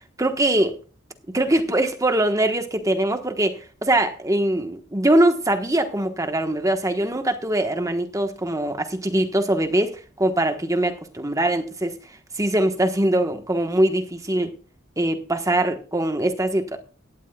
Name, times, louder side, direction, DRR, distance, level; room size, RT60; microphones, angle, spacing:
voice 1, 0.2-0.8 1.3-12.0 12.4-14.5 15.0-16.8, right 1 dB, 15° right, 1.2 m, -22 dB
17.0 x 12.5 x 2.3 m
head